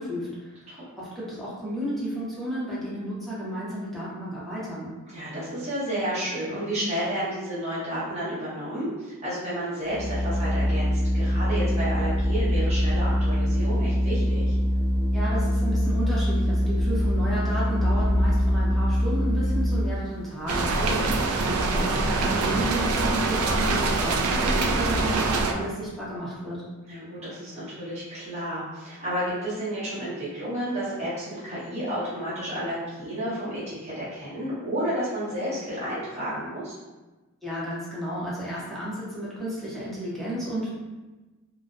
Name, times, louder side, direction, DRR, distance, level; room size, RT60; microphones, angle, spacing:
voice 1, 0.0-0.6 1.0-4.9 15.1-20.7 21.3-26.6 37.4-40.7, equal, ahead, -9 dB, 0.6 m, -32 dB
voice 2, 5.1-14.6 20.8-21.1 26.9-36.8, equal, 30° right, -12 dB, 1.0 m, -31 dB
Organ, 9.8-20.1, left 1 dB, 65° left, 0.4 m, -23 dB
sound 1, 20.5-25.5, right 3 dB, 80° right, 0.3 m, -24 dB
2.5 x 2.1 x 2.4 m, 1.2 s
head